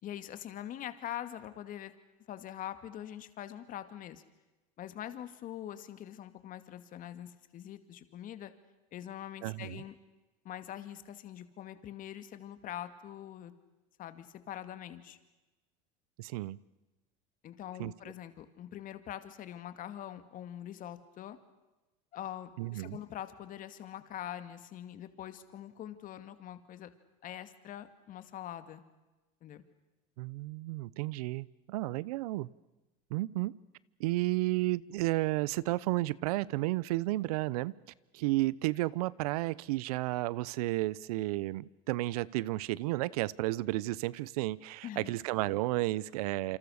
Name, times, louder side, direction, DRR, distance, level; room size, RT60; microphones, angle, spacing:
voice 1, 0.0-1.9 2.3-4.2 4.8-8.5 8.9-10.0 10.4-13.5 14.0-15.2 17.4-21.4 22.1-26.9 27.2-28.8 29.4-29.6 44.8-45.1, left 11 dB, 45° left, 11 dB, 2.3 m, -43 dB
voice 2, 9.4-9.8 16.2-16.6 17.8-17.9 22.6-23.0 30.2-32.5 33.1-33.5 34.0-37.7 38.1-46.6, right 18 dB, 85° right, 22 dB, 0.8 m, -32 dB
28.0 x 26.0 x 6.6 m, 1.1 s
supercardioid pair, 110°, 19 cm